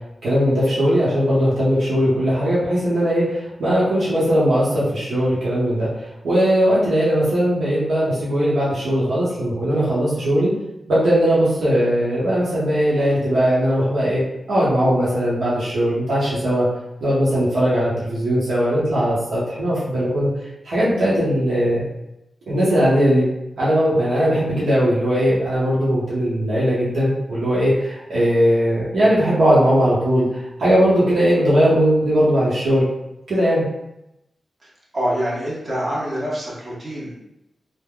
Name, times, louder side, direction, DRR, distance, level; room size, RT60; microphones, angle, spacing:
voice 1, 0.2-5.9 6.2-10.5 10.9-14.2 14.5-16.7 17.0-20.3 20.6-21.8 22.5-23.3 23.6-30.3 30.6-32.9 33.3-33.6, equal, 80° right, -8 dB, 0.9 m, -19 dB
voice 2, 34.9-37.1, equal, 40° right, -6 dB, 1.1 m, -25 dB
3.4 x 2.1 x 2.3 m, 0.88 s
cardioid pair, 65°, 0 cm